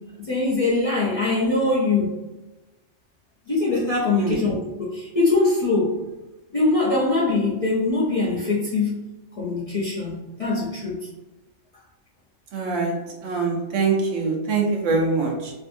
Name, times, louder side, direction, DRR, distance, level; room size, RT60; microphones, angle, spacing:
voice 1, 0.2-2.1 3.5-6.0 6.5-9.0 9.3-11.1 13.4-13.5, left 3 dB, 45° left, -7 dB, 0.5 m, -22 dB
voice 2, 12.5-13.0 13.2-15.5, right 4 dB, 75° right, 0 dB, 1.0 m, -23 dB
2.6 x 2.6 x 2.5 m, 1.1 s
omnidirectional pair, 1.3 m